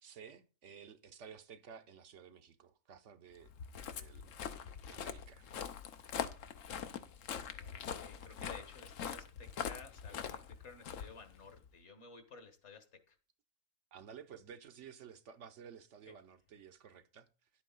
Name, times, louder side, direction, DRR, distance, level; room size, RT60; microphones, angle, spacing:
voice 1, 0.0-3.5 3.8-4.3 4.9-5.5 13.9-17.3, right 7 dB, 65° right, 1.0 m, -54 dB
Walk footsteps, 3.4-11.7, left 8 dB, 75° left, 1.2 m, -43 dB
voice 2, 7.5-13.1, left 4 dB, 60° left, 1.6 m, -54 dB
10.5 x 8.3 x 3.9 m
omnidirectional pair, 1.4 m